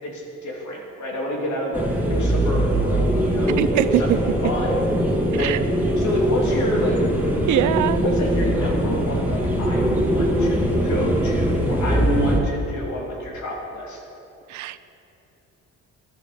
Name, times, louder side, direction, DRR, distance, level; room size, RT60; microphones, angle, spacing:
voice 1, 0.0-4.1 4.4-4.8 5.4-5.6 6.0-7.0 8.0-14.0, equal, 70° left, -2 dB, 3.0 m, -28 dB
sound 1, 1.7-12.4, equal, 5° right, 2.2 m, -22 dB
voice 2, 3.6-4.2 4.4-4.5 5.3-5.6 7.5-8.0 14.5-14.8, right 14 dB, 75° right, 15 dB, 0.6 m, -22 dB
11.5 x 9.2 x 6.8 m, 2.8 s
cardioid pair, 90°, 30 cm